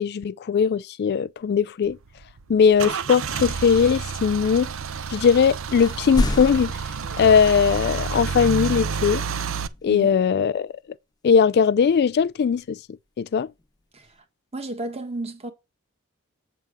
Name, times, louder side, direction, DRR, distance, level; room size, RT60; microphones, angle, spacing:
voice 1, 0.0-2.0 2.5-4.7 5.1-6.8 7.2-9.2 9.8-10.8 11.2-12.8 13.2-13.5, left 6 dB, 50° left, 0.3 m, -19 dB
sound 1, 1.3-1.4 2.5-5.5 5.8-8.0 9.2-10.3 12.1-12.7 13.4-14.2, left 1 dB, 20° left, 0.7 m, -34 dB
Car / Engine starting / Idling, 1.8-9.7, right 6 dB, 65° right, 0.6 m, -29 dB
voice 2, 14.5-15.5, right 2 dB, 30° right, 1.4 m, -32 dB
8.4 x 3.4 x 6.5 m
head